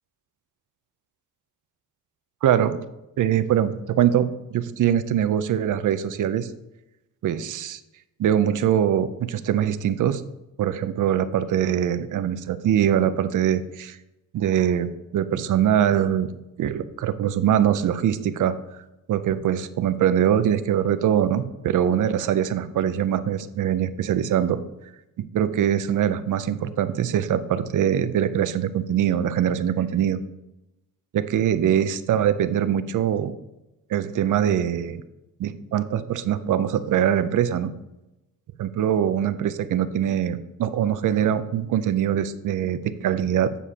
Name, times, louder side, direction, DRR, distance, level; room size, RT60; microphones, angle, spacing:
voice 1, 2.4-2.8 3.2-6.5 7.2-7.8 8.2-10.2 10.6-14.0 14.3-16.3 16.6-18.6 19.1-24.6 25.3-30.2 31.1-33.3 33.9-35.0 35.4-37.7 38.6-43.6, right 10 dB, 60° right, 12 dB, 0.6 m, -23 dB
8.2 x 7.1 x 2.9 m, 0.95 s
cardioid pair, 130°, 35 cm